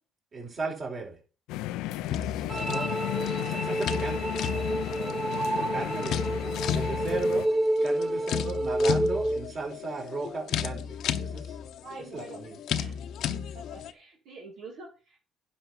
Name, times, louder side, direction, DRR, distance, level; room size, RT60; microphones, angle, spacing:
voice 1, 0.3-1.2 2.4-4.3 4.9-7.5 7.8-11.6 12.1-12.5, right 4 dB, 45° right, 1 dB, 4.3 m, -37 dB
sound 1, 1.5-7.5, left 15 dB, 85° left, 0.4 m, -34 dB
sound 2, 2.0-13.9, left 8 dB, 70° left, 0.8 m, -34 dB
sound 3, 2.5-9.5, right 1 dB, 25° right, 1.0 m, -29 dB
voice 2, 5.3-5.7 6.4-6.8 8.5-8.7 11.8-12.5 12.8-13.0 13.5-15.3, right 3 dB, 75° right, 0 dB, 2.3 m, -46 dB
10.5 x 5.9 x 5.5 m, 0.35 s
supercardioid pair, 80°, 0 cm